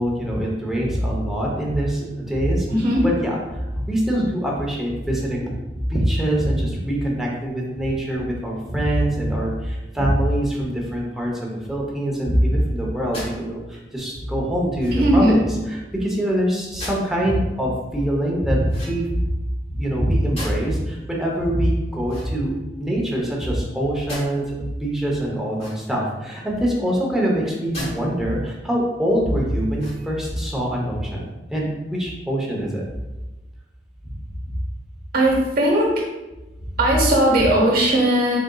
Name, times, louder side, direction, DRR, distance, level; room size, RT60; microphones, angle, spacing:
voice 1, 0.0-2.7 3.0-5.5 5.9-19.3 19.7-22.5 22.8-24.4 24.8-32.9 34.5-34.6, equal, ahead, -3 dB, 0.8 m, -23 dB
voice 2, 2.7-3.0 14.9-15.4 35.1-35.9 36.8-38.4, right 1 dB, 55° right, -1 dB, 1.0 m, -18 dB
sound 1, 13.1-13.4 14.8-15.2 16.8-17.1 18.7-19.3 20.3-20.8 22.0-22.9 24.1-24.3 25.5-26.1 27.7-28.0 28.5-28.6 29.7-30.3, left 1 dB, 35° left, 1.1 m, -36 dB
4.2 x 3.7 x 2.3 m, 1.1 s
head